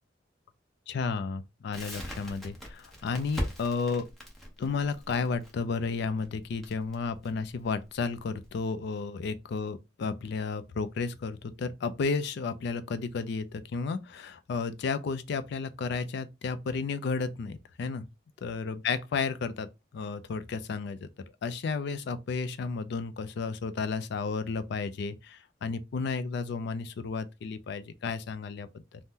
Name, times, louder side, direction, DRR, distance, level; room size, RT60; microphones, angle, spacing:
voice 1, 0.9-4.1 4.6-18.1 18.4-21.1 21.4-29.0, left 4 dB, 65° left, 0.4 m, -32 dB
Crackle, 1.7-8.5, equal, ahead, 0.8 m, -40 dB
2.7 x 2.1 x 3.5 m
head